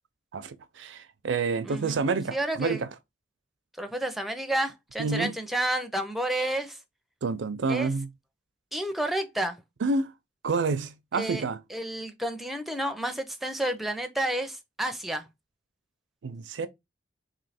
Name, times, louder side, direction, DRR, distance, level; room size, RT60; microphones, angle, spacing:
voice 1, 0.3-2.9 5.0-5.3 7.2-8.1 9.8-10.1 10.4-11.6 16.2-16.7, right 4 dB, 80° right, 0.5 m, -28 dB
voice 2, 1.6-2.0 2.3-2.8 3.8-6.8 7.7-7.9 8.7-9.6 11.1-11.4 11.7-15.2, right 1 dB, ahead, 0.5 m, -30 dB
3.1 x 2.7 x 4.1 m
head